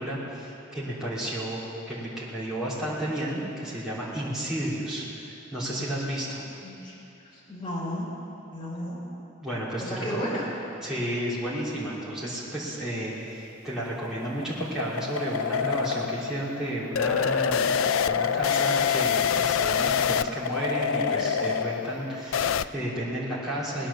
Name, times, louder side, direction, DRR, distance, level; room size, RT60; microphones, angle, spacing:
voice 1, 0.0-1.6 1.9-6.4 9.4-10.3 10.8-23.9, right 1 dB, 5° right, -9 dB, 3.0 m, -32 dB
voice 2, 6.6-6.9 7.3-8.1 8.5-9.0 9.8-10.5, equal, 25° left, -7 dB, 4.4 m, -33 dB
sound 1, 13.7-22.7, left 7 dB, 90° left, 0.4 m, -26 dB
19.5 x 10.0 x 6.9 m, 2.9 s
head